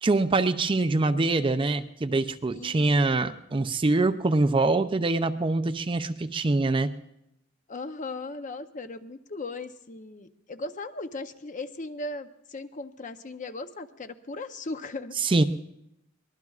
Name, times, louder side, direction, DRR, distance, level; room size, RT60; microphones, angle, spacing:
voice 1, 0.0-6.9 15.2-15.4, right 2 dB, 25° right, 10 dB, 0.5 m, -24 dB
voice 2, 2.5-3.3 7.7-15.1, left 2 dB, 40° left, 9 dB, 0.7 m, -38 dB
23.5 x 20.5 x 2.4 m, 0.80 s
head